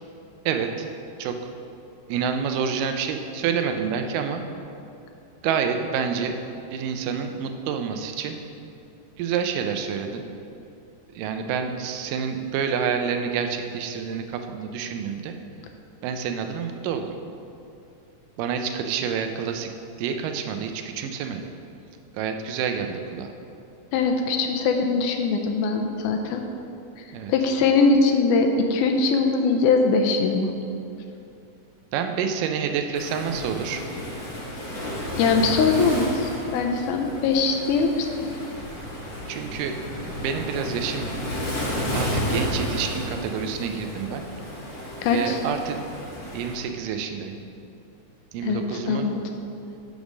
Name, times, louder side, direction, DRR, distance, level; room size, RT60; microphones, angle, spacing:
voice 1, 0.5-0.9 1.2-1.5 2.1-4.4 5.4-6.4 6.7-8.4 9.2-10.2 11.2-15.3 16.0-17.1 18.4-19.7 20.0-21.5 22.1-23.3 27.1-27.3 31.9-33.8 39.3-39.8 40.2-41.1 41.9-44.2 45.1-45.8 46.3-47.4 48.3-49.1, right 7 dB, 90° right, 6 dB, 2.2 m, -28 dB
voice 2, 23.9-26.4 27.3-30.5 35.2-38.1 45.0-45.4 48.4-49.2, left 4 dB, 80° left, 3 dB, 2.0 m, -21 dB
Waves surf, 32.9-46.5, left 1 dB, 55° left, 2.8 m, -32 dB
6.5 x 5.2 x 6.1 m, 2.7 s
omnidirectional pair, 3.7 m